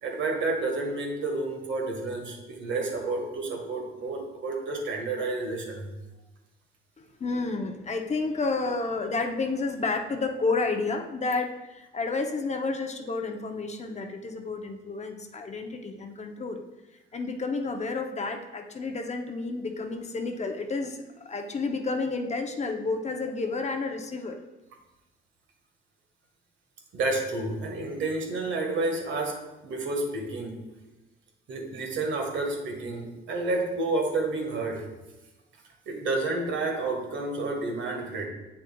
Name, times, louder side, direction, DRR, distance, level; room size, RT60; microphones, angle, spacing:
voice 1, 0.0-5.9 26.9-30.6 31.5-34.8 35.9-38.3, right 2 dB, 70° right, 1 dB, 1.5 m, -30 dB
voice 2, 7.0-16.6 17.1-24.4, left 3 dB, 35° left, 4 dB, 0.7 m, -30 dB
8.1 x 6.4 x 2.3 m, 1.1 s
cardioid pair, 90°, 20 cm